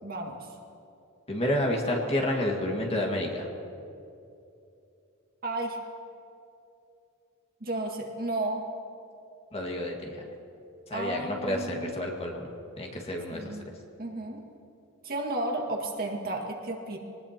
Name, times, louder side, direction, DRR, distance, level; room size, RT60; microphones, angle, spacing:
voice 1, 0.0-0.4 5.4-5.8 7.6-8.7 10.9-11.9 13.3-13.6 14.0-14.4 15.0-17.0, right 2 dB, 45° right, 0 dB, 2.0 m, -33 dB
voice 2, 1.3-3.5 9.5-10.3 10.9-13.6, left 1 dB, 30° left, 0 dB, 1.9 m, -30 dB
25.0 x 19.5 x 3.0 m, 2.7 s
head